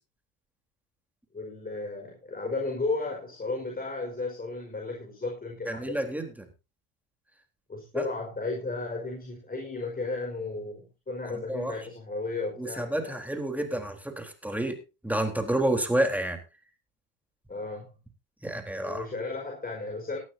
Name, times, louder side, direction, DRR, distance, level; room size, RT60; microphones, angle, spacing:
voice 1, 1.3-6.2 7.7-13.2 17.5-17.9 18.7-20.2, left 3 dB, 20° left, 2 dB, 5.3 m, -34 dB
voice 2, 5.7-6.5 7.9-8.0 11.3-11.7 12.6-14.8 15.0-16.4 18.4-19.1, right 1 dB, 5° right, 4 dB, 3.9 m, -29 dB
18.5 x 12.0 x 2.8 m, 0.29 s
supercardioid pair, 85°, 40 cm